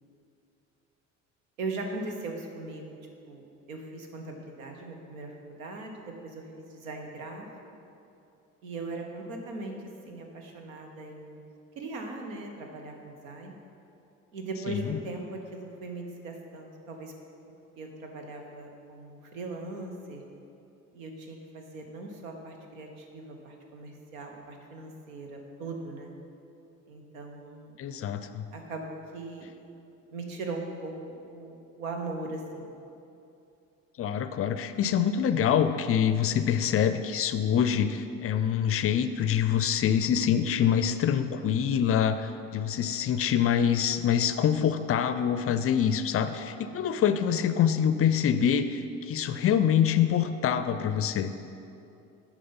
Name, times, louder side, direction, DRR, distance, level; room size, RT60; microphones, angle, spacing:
voice 1, 1.6-2.9 3.3-7.5 8.6-9.7 10.0-11.4 11.8-13.6 14.3-17.1 17.8-20.2 20.9-26.1 26.9-27.8 28.5-29.5 30.1-32.7, right 2 dB, 80° right, 3 dB, 1.1 m, -39 dB
voice 2, 14.7-15.0 27.8-28.5 34.0-51.3, left 8 dB, 35° left, 10 dB, 0.5 m, -25 dB
8.4 x 5.0 x 5.6 m, 2.7 s
hypercardioid pair, 60°, 40 cm